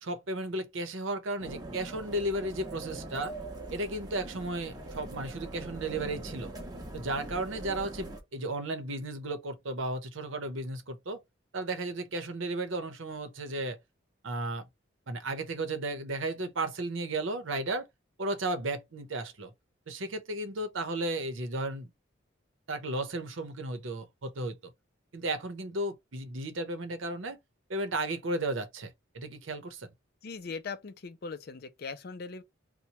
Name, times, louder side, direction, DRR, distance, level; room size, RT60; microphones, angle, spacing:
voice 1, 0.0-3.3 3.7-6.5 6.9-11.2 11.5-13.8 14.2-14.7 15.1-17.9 18.2-19.5 19.9-21.9 22.7-24.6 25.1-27.4 27.7-29.9, right 2 dB, 80° right, 0.8 m, -34 dB
sound 1, 1.4-8.2, right 2 dB, 20° right, 0.7 m, -42 dB
voice 2, 30.2-32.4, left 4 dB, 50° left, 0.4 m, -40 dB
2.9 x 2.2 x 4.1 m
head